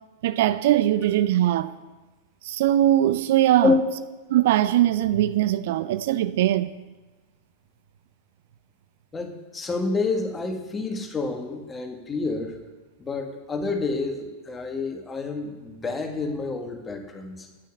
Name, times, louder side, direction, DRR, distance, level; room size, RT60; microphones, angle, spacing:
voice 1, 0.2-1.7 2.4-3.7 4.3-6.8, right 13 dB, 55° right, 0.4 m, -21 dB
voice 2, 9.1-12.6 13.0-17.5, left 4 dB, 15° left, 1.8 m, -28 dB
10.5 x 6.4 x 8.8 m
figure-of-eight pair, 90°, 0 cm